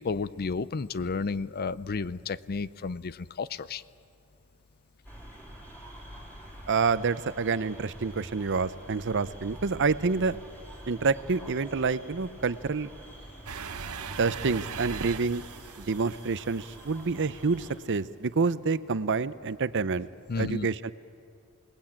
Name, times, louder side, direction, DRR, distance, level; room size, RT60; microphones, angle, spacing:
voice 1, 0.0-3.8 20.3-20.7, left 4 dB, 45° left, 17 dB, 0.5 m, -32 dB
sound 1, 5.0-17.7, right 1 dB, 10° left, 3.9 m, -47 dB
voice 2, 6.7-10.4 10.9-12.9 14.2-15.4 15.8-20.1 20.4-20.9, right 4 dB, 55° right, 15 dB, 0.7 m, -28 dB
sound 2, 13.5-17.4, right 6 dB, 90° right, 1.0 m, -40 dB
28.0 x 19.5 x 8.8 m, 2.5 s
head